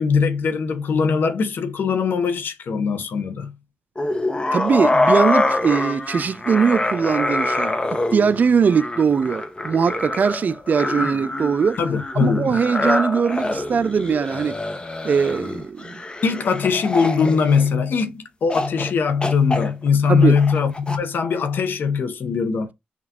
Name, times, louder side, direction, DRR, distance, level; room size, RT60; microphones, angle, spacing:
voice 1, 0.0-3.5 11.8-12.6 16.2-22.7, left 5 dB, 70° left, 0.7 m, -21 dB
sound 1, 4.0-18.0 18.5-18.9 19.2-21.0, left 2 dB, 30° left, 0.8 m, -25 dB
voice 2, 4.5-7.8 8.1-11.8 12.2-14.6 15.0-16.0 20.1-20.4, right 6 dB, 55° right, 0.3 m, -20 dB
5.9 x 2.4 x 2.8 m
cardioid pair, 55°, 3 cm